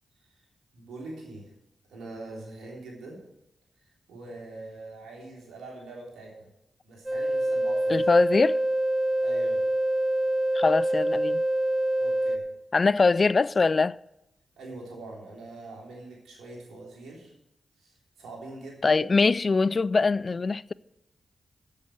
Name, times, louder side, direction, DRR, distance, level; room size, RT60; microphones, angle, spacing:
voice 1, 0.7-1.5 1.9-3.2 4.1-6.5 6.8-8.1 9.2-9.7 12.0-12.5 14.6-17.3 17.8-19.1, right 2 dB, 85° right, 3.5 m, -43 dB
sound 1, 7.1-12.4, right 1 dB, 20° right, 1.6 m, -26 dB
voice 2, 7.9-8.6 10.5-11.4 12.7-14.0 18.8-20.7, left 4 dB, 50° left, 0.3 m, -23 dB
8.3 x 7.8 x 8.8 m
supercardioid pair, 40°, 0 cm